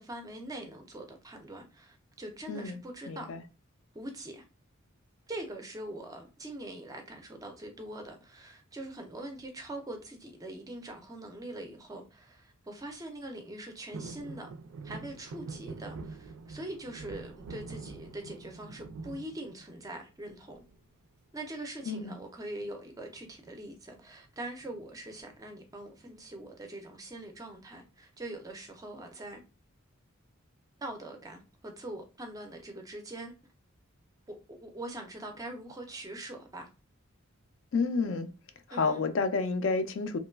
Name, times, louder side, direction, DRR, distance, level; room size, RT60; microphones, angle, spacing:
voice 1, 0.0-3.3 3.9-4.4 5.3-14.5 14.8-20.6 21.3-29.4 30.8-33.3 34.3-36.7 38.7-39.0, right 1 dB, 15° right, 0.4 m, -43 dB
voice 2, 2.5-2.8 3.1-3.4 21.9-22.2 37.7-38.3 38.7-40.2, left 4 dB, 60° left, 0.3 m, -30 dB
sound 1, 13.9-20.1 20.5-21.1 22.4-22.8 23.1-23.2 23.5-23.8 24.6-25.5 26.0-26.1, right 3 dB, 85° right, 0.4 m, -45 dB
2.9 x 2.2 x 2.2 m
head